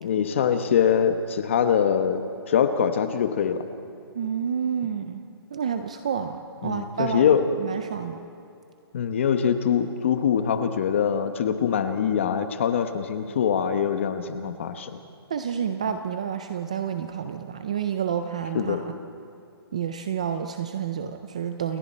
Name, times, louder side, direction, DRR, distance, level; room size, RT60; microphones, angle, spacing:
voice 1, 0.0-2.2 2.5-3.6 6.6-7.5 8.9-14.9 18.5-18.8, left 8 dB, 30° left, 9 dB, 1.0 m, -23 dB
voice 2, 4.1-5.2 5.5-8.2 15.3-18.8 19.7-21.8, right 7 dB, 15° right, 8 dB, 0.4 m, -29 dB
29.0 x 21.0 x 4.3 m, 2.6 s
hypercardioid pair, 175°, 13 cm